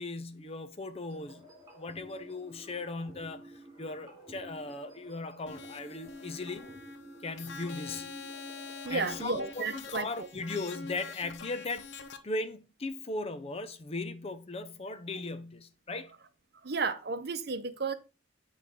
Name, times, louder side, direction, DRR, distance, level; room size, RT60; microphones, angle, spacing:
voice 1, 0.0-1.5 1.8-3.5 3.8-6.7 7.2-8.1 8.9-11.9 12.2-16.1, left 3 dB, 35° left, 0.6 m, -38 dB
sound 1, 1.1-9.6, right 1 dB, 20° right, 3.2 m, -52 dB
sound 2, 5.5-12.2, left 4 dB, 90° left, 0.8 m, -45 dB
voice 2, 8.8-10.3 16.6-17.9, right 4 dB, 60° right, 0.7 m, -33 dB
8.2 x 3.2 x 5.1 m
head